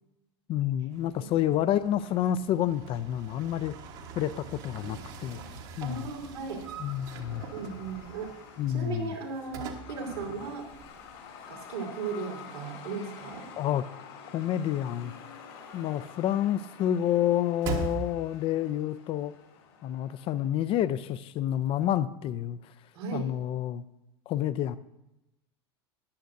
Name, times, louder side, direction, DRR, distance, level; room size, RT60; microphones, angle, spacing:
voice 1, 0.5-3.7 4.2-5.4 5.8-6.1 6.8-7.5 8.6-9.1 13.6-13.8 14.3-15.1 15.7-19.3 19.8-22.6 23.1-23.8 24.3-24.8, left 11 dB, 45° left, 14 dB, 0.6 m, -29 dB
sound 1, 0.9-11.2 11.5-11.6 17.6-18.5, right 5 dB, 60° right, 1.4 m, -42 dB
Truck, 3.0-20.5, left 6 dB, 70° left, 2.6 m, -50 dB
voice 2, 5.8-6.6 7.5-8.3 8.7-10.8 11.5-13.5 22.9-23.3, right 4 dB, 80° right, -1 dB, 3.3 m, -36 dB
14.5 x 10.0 x 2.7 m, 0.92 s
hypercardioid pair, 85°, 13 cm